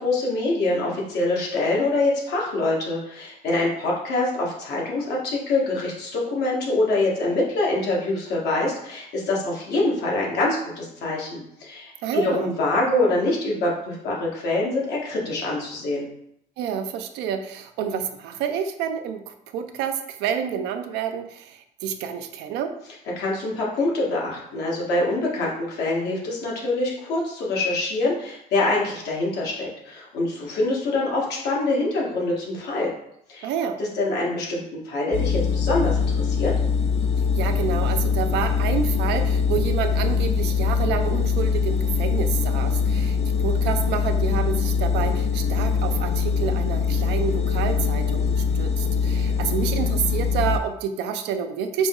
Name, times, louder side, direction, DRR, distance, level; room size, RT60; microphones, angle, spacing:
voice 1, 0.0-16.1 23.2-32.9 33.3-33.5 33.8-36.5, left 2 dB, 80° left, -3 dB, 1.4 m, -25 dB
voice 2, 12.0-12.5 16.6-22.7 33.4-33.8 37.4-51.9, right 8 dB, 90° right, 7 dB, 0.4 m, -28 dB
sound 1, 35.1-50.6, left 6 dB, 40° left, 0.5 m, -23 dB
4.8 x 2.0 x 3.6 m, 0.74 s
cardioid pair, 110°, 17 cm